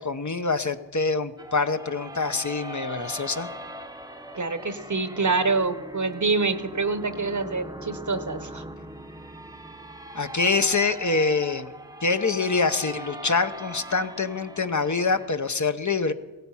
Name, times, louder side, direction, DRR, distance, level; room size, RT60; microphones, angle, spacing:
voice 1, 0.0-3.5 10.1-11.7 12.0-16.1, left 4 dB, 45° left, 9 dB, 0.9 m, -25 dB
sound 1, 1.4-15.3, right 1 dB, 10° right, 0.8 m, -41 dB
voice 2, 4.3-8.6, right 4 dB, 45° right, 11 dB, 1.0 m, -26 dB
16.5 x 15.0 x 5.7 m, 1.2 s
wide cardioid pair, 45°, 40 cm